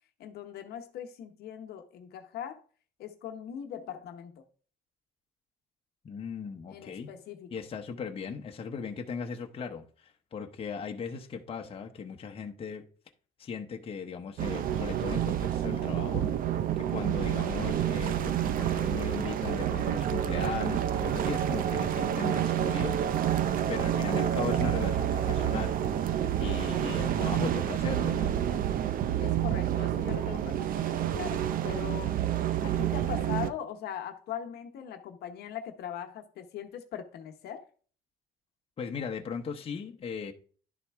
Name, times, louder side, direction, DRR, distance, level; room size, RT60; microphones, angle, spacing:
voice 1, 0.2-2.6 3.0-4.4 6.7-7.5 23.5-23.6 26.8-27.0 29.2-32.2 32.6-37.7, left 9 dB, 70° left, 1.0 m, -40 dB
voice 2, 6.0-7.1 7.5-12.8 13.4-16.3 16.8-23.3 23.7-28.4 38.8-40.3, left 6 dB, 35° left, 0.9 m, -38 dB
sound 1, 14.4-33.5, right 10 dB, 55° right, 0.6 m, -29 dB
11.0 x 4.1 x 3.5 m
cardioid pair, 110°, 17 cm